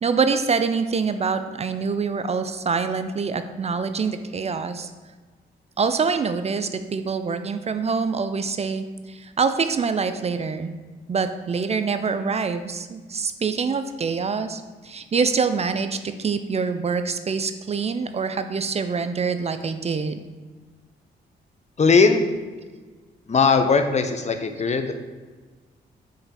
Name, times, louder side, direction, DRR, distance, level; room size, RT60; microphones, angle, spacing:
voice 1, 0.0-4.9 5.8-10.7 11.1-20.2, right 5 dB, 30° right, 9 dB, 0.3 m, -25 dB
voice 2, 21.8-22.2 23.3-24.9, left 4 dB, 35° left, 7 dB, 0.5 m, -19 dB
3.8 x 3.3 x 4.1 m, 1.4 s
supercardioid pair, 50°, 21 cm